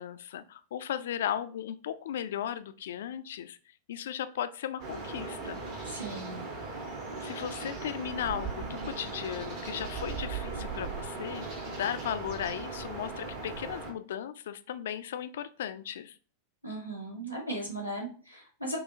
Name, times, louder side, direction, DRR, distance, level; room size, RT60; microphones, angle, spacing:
voice 1, 0.0-3.6 3.9-5.6 7.2-16.2, left 10 dB, 60° left, 12 dB, 0.3 m, -36 dB
sound 1, 4.8-13.9, right 4 dB, 50° right, 1.3 m, -38 dB
voice 2, 5.9-6.5 16.6-18.8, right 1 dB, 90° right, -1 dB, 1.2 m, -37 dB
5.6 x 2.4 x 2.6 m, 0.40 s
figure-of-eight pair, 90°, 0 cm